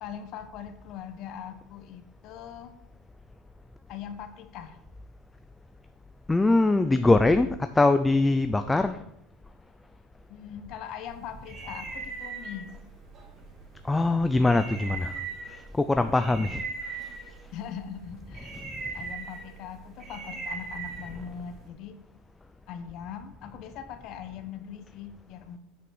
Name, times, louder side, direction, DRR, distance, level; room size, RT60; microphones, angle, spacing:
voice 1, 0.0-2.7 3.9-4.8 10.3-12.7 16.3-16.5 17.5-18.6 18.9-22.0 22.7-25.6, left 8 dB, 45° left, 9 dB, 1.0 m, -41 dB
voice 2, 6.3-9.0 13.8-15.2 15.5-17.0 18.6-18.7, left 2 dB, 10° left, 9 dB, 0.4 m, -23 dB
sound 1, 11.1-21.7, right 4 dB, 30° right, 1.8 m, -40 dB
9.6 x 5.8 x 6.1 m, 0.78 s
supercardioid pair, 150°, 0 cm